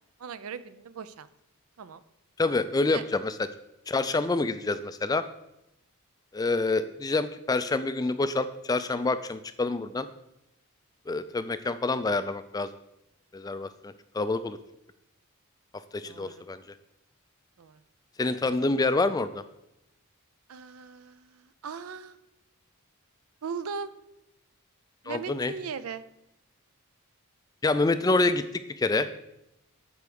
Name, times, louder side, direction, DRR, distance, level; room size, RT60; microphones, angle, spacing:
voice 1, 0.2-1.3 1.8-2.0 2.9-3.0 16.0-16.4 17.6-17.8 20.5-22.2 23.4-23.9 25.0-26.0, right 5 dB, 80° right, 14 dB, 0.5 m, -38 dB
voice 2, 2.4-3.3 3.9-5.2 6.3-10.1 11.1-12.7 13.3-14.6 15.9-16.6 18.2-19.4 25.1-25.5 27.6-28.4 28.8-29.1, left 3 dB, 15° left, 12 dB, 0.3 m, -27 dB
8.1 x 4.6 x 6.9 m, 0.86 s
head